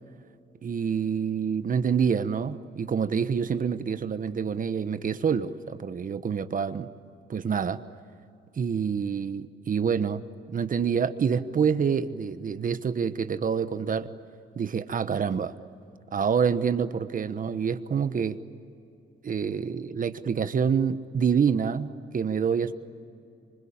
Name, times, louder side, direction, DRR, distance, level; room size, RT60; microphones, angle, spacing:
voice 1, 0.6-6.9 7.3-7.8 8.6-10.2 10.5-14.1 14.6-15.5 16.1-18.4 19.2-22.7, right 6 dB, 45° right, 11 dB, 1.2 m, -27 dB
26.5 x 25.0 x 8.8 m, 2.6 s
cardioid pair, 90°, 20 cm